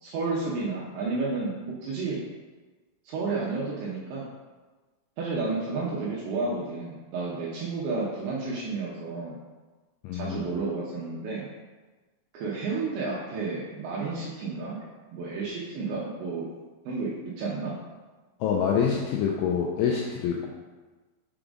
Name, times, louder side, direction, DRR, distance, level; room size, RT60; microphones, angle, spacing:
voice 1, 0.0-2.2 3.1-4.3 5.2-9.4 10.1-11.5 12.3-14.9 15.1-16.5 16.9-17.7, right 3 dB, 80° right, -5 dB, 2.7 m, -31 dB
voice 2, 10.0-10.5 18.4-20.5, left 7 dB, 85° left, -1 dB, 2.7 m, -26 dB
7.0 x 5.0 x 3.8 m, 1.3 s
omnidirectional pair, 6.0 m